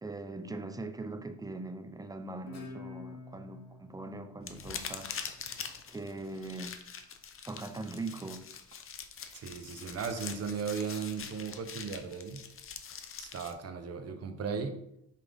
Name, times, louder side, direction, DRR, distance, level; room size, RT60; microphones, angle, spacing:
voice 1, 0.0-5.1 5.9-6.8 7.5-8.5, right 2 dB, 10° right, 0.6 m, -41 dB
Guitar, 2.5-5.7, left 3 dB, 60° left, 1.1 m, -48 dB
sound 1, 4.4-13.5, left 7 dB, 45° left, 0.7 m, -44 dB
voice 2, 9.3-12.5 13.2-14.8, right 6 dB, 55° right, 0.8 m, -36 dB
5.8 x 4.7 x 3.5 m
cardioid pair, 90°, 30 cm